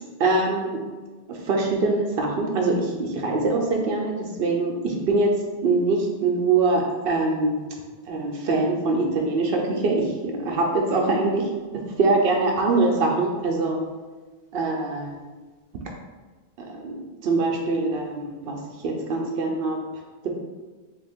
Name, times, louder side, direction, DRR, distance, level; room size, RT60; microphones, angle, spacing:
voice 1, 0.2-0.8 1.3-5.3 5.6-7.6 8.1-11.5 12.0-13.8 14.5-15.2 16.6-19.8, right 3 dB, 65° right, 0 dB, 0.7 m, -23 dB
3.3 x 2.4 x 3.4 m, 1.3 s
omnidirectional pair, 1.1 m